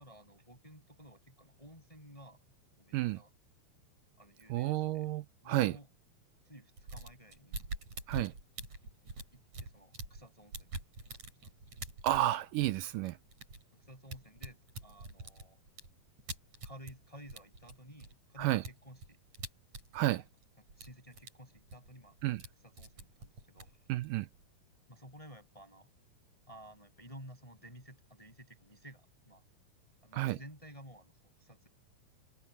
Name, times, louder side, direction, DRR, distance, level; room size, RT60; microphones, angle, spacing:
voice 1, 0.0-2.4 2.8-3.3 4.2-5.1 5.4-5.9 6.4-7.7 9.3-10.8 11.4-11.8 13.0-13.1 13.7-15.6 16.6-19.2 20.2-20.3 20.6-22.2 22.6-23.9 24.9-25.9 26.5-29.4 30.0-31.1 31.4-31.7, equal, 10° left, 7.4 m, -54 dB
voice 2, 4.5-5.7 8.1-8.3 12.0-13.1 18.4-18.6 19.9-20.2 22.2-22.4 23.9-24.3 30.2-30.4, right 15 dB, 80° right, 2.0 m, -31 dB
sound 1, 6.8-10.2 10.5-17.0 17.3-20.4 20.7-21.3 21.6-22.5 22.8-24.4, right 3 dB, 45° right, 9.0 m, -45 dB
omnidirectional pair, 4.4 m